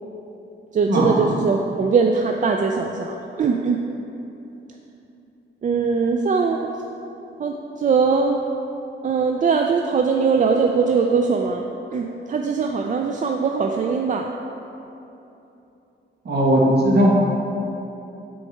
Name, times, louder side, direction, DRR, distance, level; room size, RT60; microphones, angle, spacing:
voice 1, 0.7-3.8 5.6-6.7 7.4-8.4 9.0-14.3, right 5 dB, 40° right, 2 dB, 0.4 m, -21 dB
voice 2, 16.2-17.1, right 1 dB, 55° right, -4 dB, 1.6 m, -17 dB
6.2 x 4.5 x 6.4 m, 3.0 s
wide cardioid pair, 130°, 20 cm